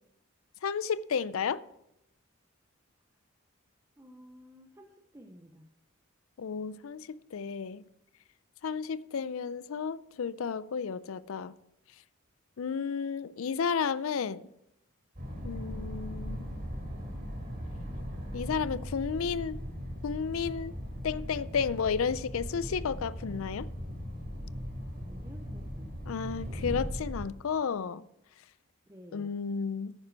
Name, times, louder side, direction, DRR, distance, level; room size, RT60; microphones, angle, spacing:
voice 1, 0.6-1.6 6.4-7.8 8.6-11.5 12.6-14.5 15.4-16.5 18.3-19.6 20.0-20.7 21.0-23.7 26.1-28.0 29.1-29.9, left 6 dB, 75° left, 0.4 m, -32 dB
voice 2, 4.0-5.7 25.0-26.4 28.9-29.3, equal, 15° right, 0.6 m, -53 dB
sound 1, 15.2-27.3, equal, 40° right, 3.0 m, -39 dB
10.0 x 9.7 x 4.6 m
head